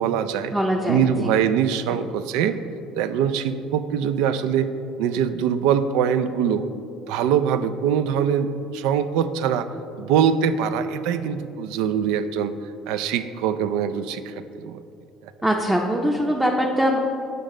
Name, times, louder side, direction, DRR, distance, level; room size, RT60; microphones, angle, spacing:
voice 1, 0.0-0.5 0.9-2.6 2.9-4.7 5.0-6.6 7.1-9.7 10.0-12.5 12.9-14.8, right 8 dB, 80° right, 11 dB, 0.3 m, -23 dB
voice 2, 0.5-1.4 15.4-17.0, equal, 5° right, -1 dB, 0.6 m, -22 dB
8.2 x 5.3 x 3.8 m, 2.7 s
supercardioid pair, 90°, 0 cm